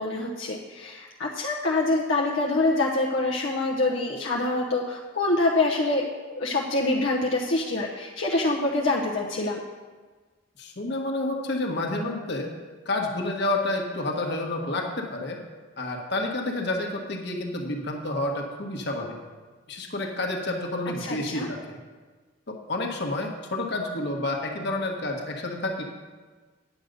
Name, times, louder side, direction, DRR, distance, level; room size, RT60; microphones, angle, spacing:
voice 1, 0.0-9.6 21.0-21.5, left 2 dB, 75° left, -2 dB, 0.9 m, -25 dB
voice 2, 10.6-12.5 12.8-15.4 15.8-19.1 19.7-21.8 22.5-25.8, left 2 dB, 55° left, 1 dB, 1.3 m, -29 dB
9.4 x 7.9 x 5.3 m, 1.4 s
head